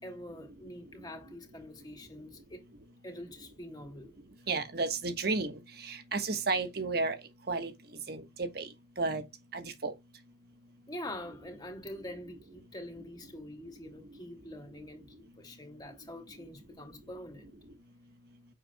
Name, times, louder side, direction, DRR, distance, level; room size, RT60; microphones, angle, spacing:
voice 1, 0.0-2.7 3.0-4.1 10.9-17.5, left 1 dB, 25° left, 3.0 m, -45 dB
voice 2, 4.5-5.5 5.8-7.2 7.5-7.7 8.1-8.7 9.0-9.2 9.5-9.9, right 3 dB, 60° right, 1.5 m, -32 dB
8.7 x 7.2 x 2.4 m
head